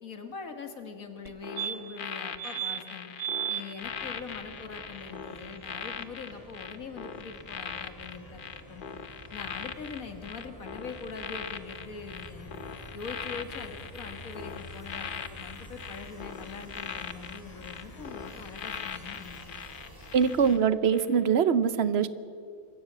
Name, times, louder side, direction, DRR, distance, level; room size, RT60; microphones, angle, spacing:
voice 1, 0.0-3.1 3.5-8.9 9.3-12.5 12.9-19.5, left 5 dB, 65° left, 7 dB, 2.0 m, -43 dB
sound 1, 1.3-1.4 1.6-2.1 2.4-2.8 3.2-3.6 6.0-6.1 6.3-6.4, right 11 dB, 85° right, 1.4 m, -33 dB
sound 2, 1.4-20.6 20.9-21.2, left 6 dB, 45° left, 0.8 m, -41 dB
sound 3, 3.8-20.6, equal, 15° left, 3.1 m, -49 dB
voice 2, 20.1-22.1, right 7 dB, 55° right, 15 dB, 0.8 m, -23 dB
25.0 x 15.0 x 7.5 m, 2.3 s
omnidirectional pair, 1.6 m